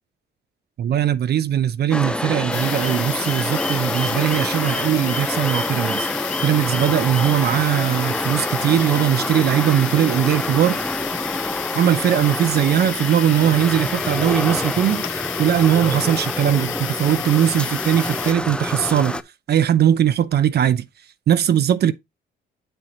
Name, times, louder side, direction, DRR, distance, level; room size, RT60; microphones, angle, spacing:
voice 1, 0.8-10.8 11.7-19.2 19.5-20.9 21.3-21.9, right 10 dB, 55° right, 0.6 m, -20 dB
sound 1, 1.9-19.2, left 1 dB, 5° left, 0.5 m, -27 dB
sound 2, 2.5-18.3, left 13 dB, 75° left, 0.5 m, -31 dB
7.5 x 4.5 x 3.8 m
cardioid pair, 90°, 20 cm